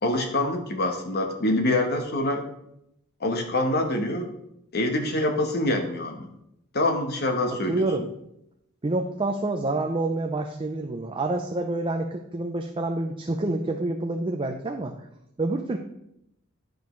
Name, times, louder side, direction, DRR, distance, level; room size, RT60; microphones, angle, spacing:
voice 1, 0.0-2.4 3.2-4.3 4.7-6.3 6.7-8.1, left 1 dB, 50° left, 5 dB, 1.1 m, -25 dB
voice 2, 7.7-8.1 8.8-14.9 15.4-15.8, right 2 dB, 25° right, 4 dB, 0.5 m, -27 dB
11.5 x 5.1 x 3.1 m, 0.79 s
head